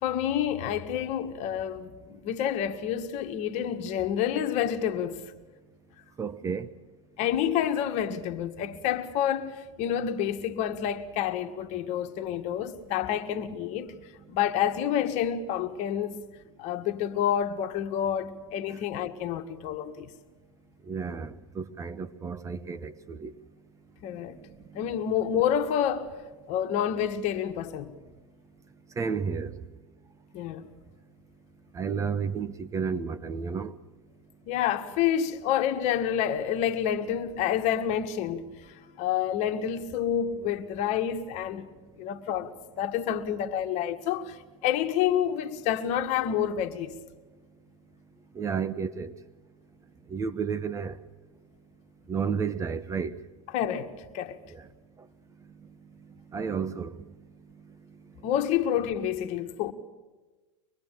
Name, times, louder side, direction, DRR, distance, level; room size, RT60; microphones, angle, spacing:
voice 1, 0.0-5.2 7.2-13.9 14.3-16.2 16.6-20.1 24.0-24.4 24.7-26.1 26.5-27.9 30.3-30.7 34.5-41.7 42.0-44.4 44.6-46.9 53.5-54.4 58.2-59.7, left 9 dB, 45° left, 1.7 m, -28 dB
voice 2, 6.2-6.7 18.7-18.8 20.9-23.3 24.7-24.9 29.0-29.6 31.7-33.8 48.3-49.1 50.1-51.0 52.1-53.2 54.5-54.7 56.3-57.1, right 6 dB, 20° right, 0.7 m, -32 dB
24.5 x 21.0 x 7.6 m
hypercardioid pair, 115°, 16 cm